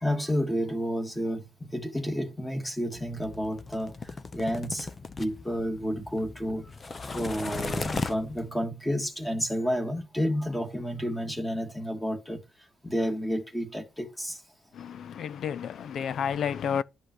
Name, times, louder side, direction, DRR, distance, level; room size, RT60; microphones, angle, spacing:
voice 1, 0.0-3.9 4.3-4.9 5.2-6.7 7.1-12.4 12.8-14.3, equal, 5° left, 1.9 m, -30 dB
sound 1, 3.0-8.5, left 4 dB, 20° left, 0.8 m, -37 dB
voice 2, 14.7-16.8, left 8 dB, 50° left, 0.5 m, -31 dB
11.5 x 5.6 x 7.7 m
cardioid pair, 160°, 0 cm